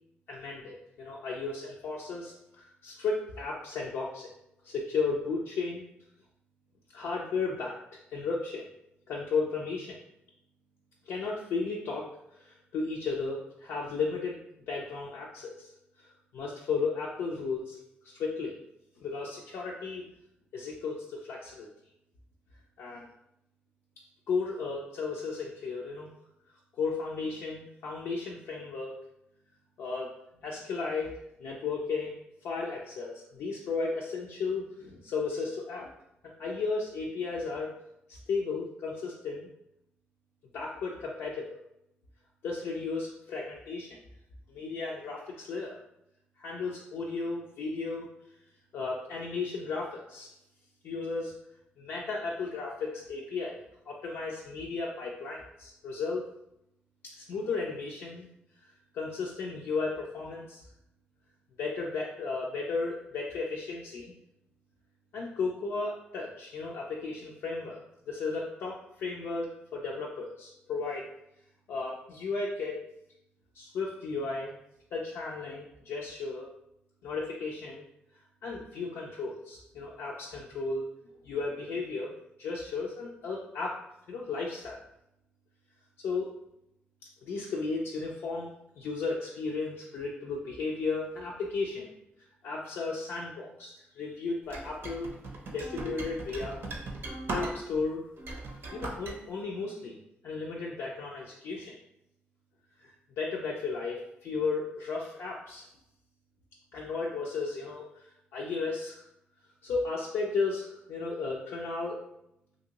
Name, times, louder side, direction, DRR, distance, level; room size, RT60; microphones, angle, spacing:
voice 1, 0.3-4.3 4.6-5.8 6.9-8.7 9.1-10.0 11.1-15.7 16.0-17.8 18.1-18.6 19.0-20.1 20.5-21.7 22.8-23.1 24.3-26.1 26.8-29.0 29.8-35.9 36.4-37.7 38.1-39.5 40.5-41.6 42.4-44.0 44.5-45.8 46.4-48.1 48.7-50.3 50.8-51.3 51.8-56.2 57.0-58.3 58.9-60.6 61.6-64.1 65.1-71.1 71.7-72.8 73.5-74.6 74.9-76.5 77.0-77.8 78.4-80.9 81.2-82.1 82.4-83.8 84.1-84.8 86.0-86.3 87.2-91.9 92.4-95.1 95.5-96.6 97.0-98.0 98.7-101.8 102.8-105.7 106.7-108.1 108.3-109.0 109.6-112.0, left 4 dB, 85° left, -4 dB, 0.4 m, -34 dB
sound 1, 94.5-97.8 98.2-99.1, right 1 dB, 65° right, 0.6 m, -37 dB
2.8 x 2.6 x 2.8 m, 0.82 s
cardioid pair, 75°, 4 cm